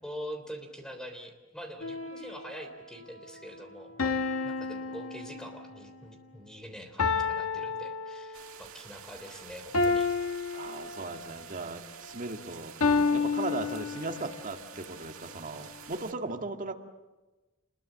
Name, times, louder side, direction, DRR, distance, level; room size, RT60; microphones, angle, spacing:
voice 1, 0.0-4.2 4.4-10.1, equal, 5° left, 6 dB, 3.5 m, -44 dB
sound 1, 1.8-2.6 4.0-5.8 7.0-8.6 9.7-11.4 12.8-14.4, left 4 dB, 85° left, 1.6 m, -30 dB
sound 2, 8.3-16.1, right 9 dB, 85° right, 1.7 m, -49 dB
voice 2, 10.5-16.7, right 3 dB, 40° right, 4 dB, 1.9 m, -37 dB
27.0 x 21.5 x 7.5 m, 1.2 s
head